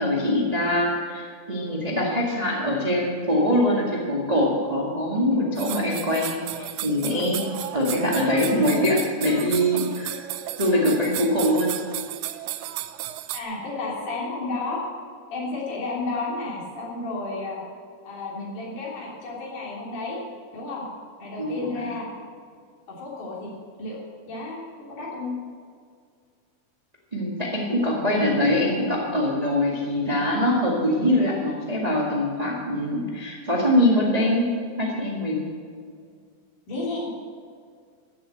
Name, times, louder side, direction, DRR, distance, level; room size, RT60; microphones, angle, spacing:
voice 1, 0.0-7.4 7.7-10.2 10.6-11.7 21.4-21.9 27.1-34.5 34.8-35.5, left 1 dB, 20° right, -3 dB, 1.0 m, -23 dB
sound 1, 5.6-13.4, right 14 dB, 80° right, 2.0 m, -34 dB
voice 2, 13.3-14.8 15.3-17.6 18.1-20.2 20.5-20.8 21.2-22.2 22.9-23.5 23.8-24.0 24.3-24.6 24.9-25.3 36.7-37.1, left 3 dB, 55° left, -4 dB, 4.5 m, -32 dB
14.5 x 7.7 x 7.9 m, 2.1 s
omnidirectional pair, 4.3 m